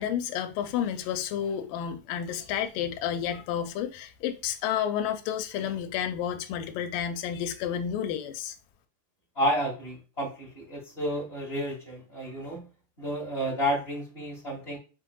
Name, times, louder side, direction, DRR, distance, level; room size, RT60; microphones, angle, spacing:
voice 1, 0.0-8.5, left 9 dB, 80° left, 2.2 m, -31 dB
voice 2, 9.3-12.6 13.0-14.8, equal, 25° left, 1.5 m, -31 dB
5.8 x 3.7 x 2.3 m
omnidirectional pair, 4.0 m